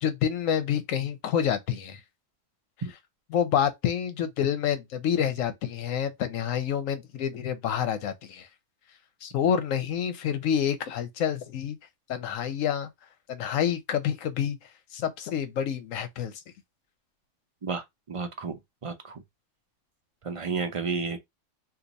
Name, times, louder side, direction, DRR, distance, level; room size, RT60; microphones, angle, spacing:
voice 1, 0.0-2.0 3.3-8.5 9.2-11.8 12.1-12.9 13.3-14.6 14.9-16.4, left 9 dB, 85° left, 1.1 m, -28 dB
voice 2, 17.6-19.2 20.2-21.2, right 4 dB, 55° right, 0.3 m, -32 dB
2.8 x 2.4 x 3.9 m
omnidirectional pair, 1.3 m